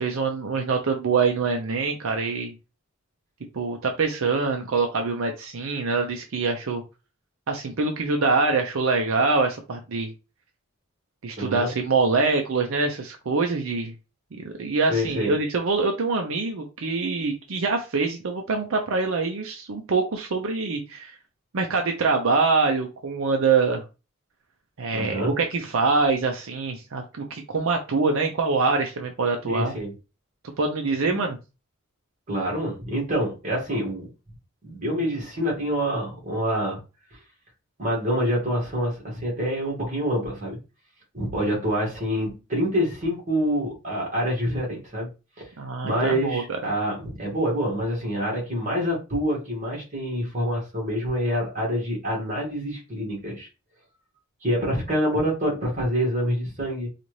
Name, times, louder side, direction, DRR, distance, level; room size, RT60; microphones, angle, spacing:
voice 1, 0.0-2.5 3.5-6.8 7.5-10.1 11.2-13.9 14.4-21.1 21.5-23.8 24.8-29.7 30.6-31.4 45.6-46.4, right 4 dB, 75° right, 0.6 m, -24 dB
voice 2, 11.4-11.7 14.9-15.3 24.9-25.3 29.4-29.9 31.0-31.2 32.3-34.1 34.6-36.8 37.8-40.6 41.1-45.1 45.4-45.5 45.8-53.5 54.4-56.9, equal, 35° right, 1.7 m, -26 dB
4.0 x 2.5 x 3.1 m
head